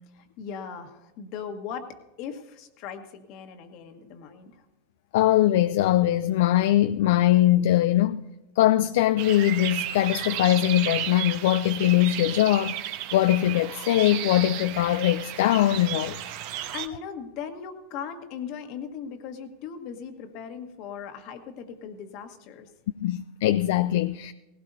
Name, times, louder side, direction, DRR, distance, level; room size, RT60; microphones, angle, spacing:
voice 1, 0.1-4.6 16.5-22.7, left 7 dB, 55° left, 1.5 m, -39 dB
voice 2, 5.1-8.2 8.6-12.7 13.1-16.2 23.0-24.3, left 13 dB, 70° left, 0.4 m, -21 dB
sound 1, 9.2-16.9, right 11 dB, 60° right, 1.1 m, -33 dB
18.0 x 16.5 x 2.7 m
hypercardioid pair, 110°, 0 cm